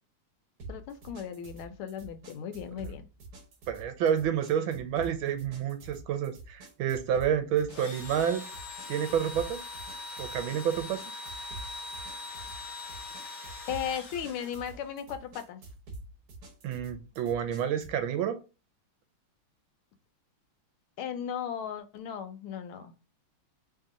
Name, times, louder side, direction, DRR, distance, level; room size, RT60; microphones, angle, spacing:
sound 1, 0.6-18.0, right 2 dB, 55° right, 1.3 m, -47 dB
voice 1, 0.7-3.1 13.7-15.6 21.0-22.9, left 8 dB, 85° left, 1.5 m, -36 dB
voice 2, 3.7-8.4 8.9-9.6 10.2-11.0 16.6-18.4, right 9 dB, 75° right, 1.4 m, -29 dB
Engine / Drill, 7.7-15.0, left 3 dB, 65° left, 0.8 m, -42 dB
3.5 x 2.8 x 3.6 m
omnidirectional pair, 2.3 m